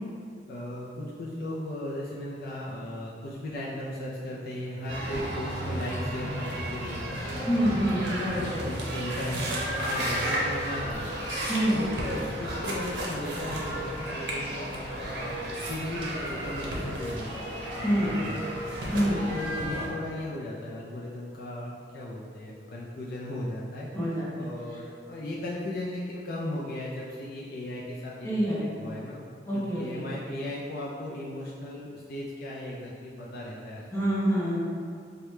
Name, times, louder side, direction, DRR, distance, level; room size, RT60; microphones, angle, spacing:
voice 1, 0.5-7.5 7.8-11.4 11.7-17.5 17.7-17.9 18.2-18.5 19.3-33.8, left 1 dB, 55° left, -5 dB, 0.4 m, -37 dB
sound 1, 4.9-19.9, right 1 dB, 75° right, 0.7 m, -33 dB
voice 2, 7.5-8.6 11.5-11.8 17.8-18.1 18.9-19.2 23.9-24.5 28.2-28.7 29.5-30.0 33.9-34.6, equal, 15° left, -8 dB, 0.8 m, -26 dB
4.7 x 2.2 x 3.1 m, 2.3 s
head